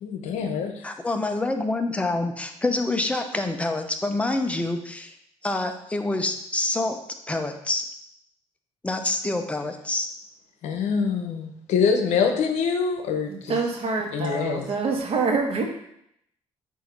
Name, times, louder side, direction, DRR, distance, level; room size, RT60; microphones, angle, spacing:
voice 1, 0.0-0.7 10.6-13.6 14.1-14.7, left 6 dB, 80° left, 5 dB, 0.8 m, -25 dB
voice 2, 0.8-5.1 5.4-7.0 7.3-7.8 8.8-10.1, left 2 dB, 10° left, 5 dB, 0.6 m, -26 dB
voice 3, 13.3-15.6, right 4 dB, 55° right, 3 dB, 1.2 m, -26 dB
7.5 x 2.7 x 5.2 m, 0.74 s
cardioid pair, 110°, 12 cm